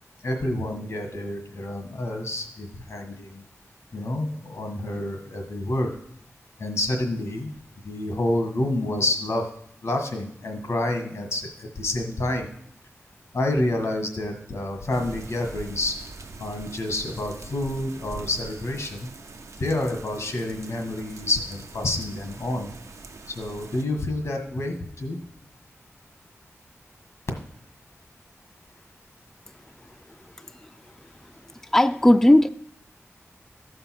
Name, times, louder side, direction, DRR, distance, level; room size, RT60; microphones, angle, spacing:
voice 1, 0.2-3.4 3.9-5.9 6.6-7.5 7.8-9.5 9.8-12.5 13.3-16.0 16.4-19.1 19.6-22.7 23.3-25.2, left 1 dB, 80° left, 4 dB, 1.6 m, -28 dB
sound 1, 14.9-23.8, right 3 dB, 85° right, 0.7 m, -43 dB
voice 2, 30.4-30.7 31.6-32.5, left 1 dB, 10° left, 10 dB, 0.3 m, -18 dB
14.0 x 5.4 x 6.0 m, 0.70 s
wide cardioid pair, 100°, 5 cm